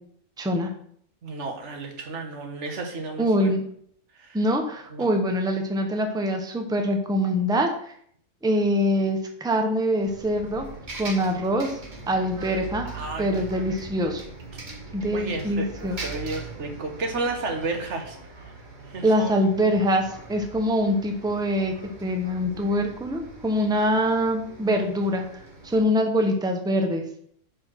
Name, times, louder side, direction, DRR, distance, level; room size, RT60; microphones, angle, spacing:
voice 1, 0.4-0.7 3.2-3.6 4.3-7.7 8.4-10.7 10.9-11.8 12.1-12.9 13.2-14.2 14.9-16.0 19.0-21.7 22.0-27.0, equal, 5° right, 4 dB, 0.7 m, -24 dB
voice 2, 1.2-3.5 4.1-4.4 4.9-5.1 12.9-13.5 15.1-18.2 18.5-18.6 18.9-19.3, right 3 dB, 70° right, 4 dB, 1.4 m, -32 dB
Bus, 10.0-25.8, right 3 dB, 40° right, 1.3 m, -41 dB
5.1 x 4.4 x 6.1 m, 0.63 s
omnidirectional pair, 1.3 m